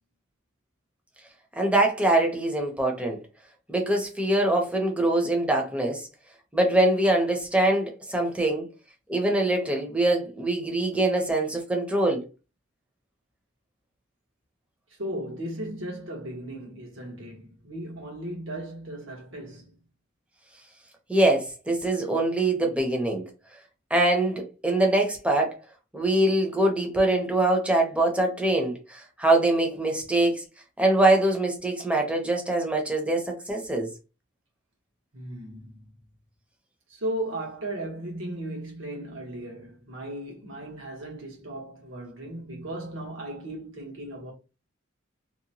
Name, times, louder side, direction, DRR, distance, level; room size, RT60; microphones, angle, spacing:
voice 1, 1.6-3.2 3.7-6.1 6.5-8.7 9.1-12.2 21.1-23.2 23.9-25.6 25.9-30.4 30.8-33.9, right 1 dB, 5° right, 0.6 m, -23 dB
voice 2, 15.0-19.7 35.1-35.8 36.9-44.3, right 1 dB, 80° right, 1.1 m, -36 dB
2.9 x 2.1 x 2.7 m
head